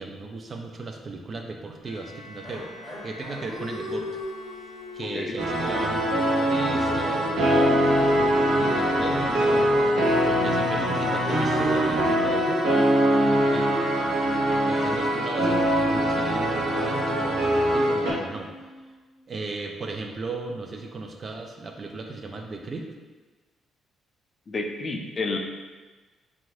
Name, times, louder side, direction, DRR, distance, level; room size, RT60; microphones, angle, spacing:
voice 1, 0.0-2.7 3.0-4.1 4.9-9.7 10.2-12.9 13.2-13.9 14.5-18.5 19.3-22.9, right 3 dB, 40° right, 3 dB, 0.3 m, -36 dB
Bowed string instrument, 1.8-5.6, left 1 dB, 80° left, 0.6 m, -46 dB
sound 1, 2.4-10.5 11.0-19.1, equal, 10° left, 0.7 m, -39 dB
sound 2, 5.4-18.1, equal, 85° right, 0.7 m, -23 dB
voice 2, 24.5-25.4, left 3 dB, 40° left, 2 dB, 0.4 m, -30 dB
2.5 x 2.4 x 3.2 m, 1.3 s
cardioid pair, 90°, 0 cm